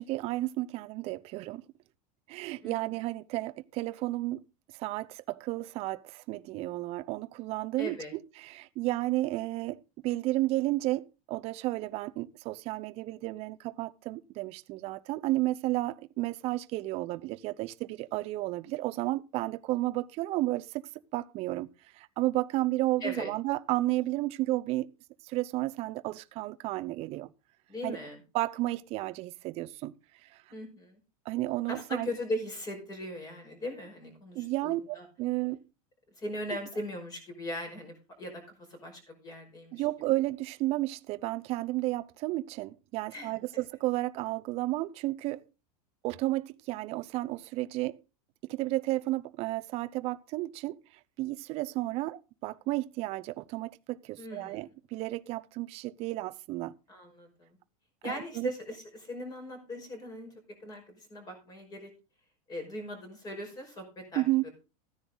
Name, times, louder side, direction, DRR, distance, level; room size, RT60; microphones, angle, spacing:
voice 1, 0.0-1.6 2.3-4.4 4.7-21.7 21.9-24.9 25.2-27.3 27.8-28.0 28.3-29.9 30.2-30.4 31.3-32.1 34.3-35.6 39.7-45.4 46.0-48.0 48.5-50.8 51.2-56.7 58.0-58.5 64.1-64.5, right 18 dB, 35° right, 0.7 m, -32 dB
voice 2, 7.8-8.1 23.0-23.3 27.7-28.2 30.5-31.0 31.7-35.0 36.2-38.4 38.7-39.8 43.1-43.6 54.2-54.6 56.9-57.6 58.0-60.3 60.6-61.9 62.5-64.5, left 1 dB, 20° left, 5.3 m, -39 dB
15.0 x 9.9 x 4.0 m
supercardioid pair, 160°, 18 cm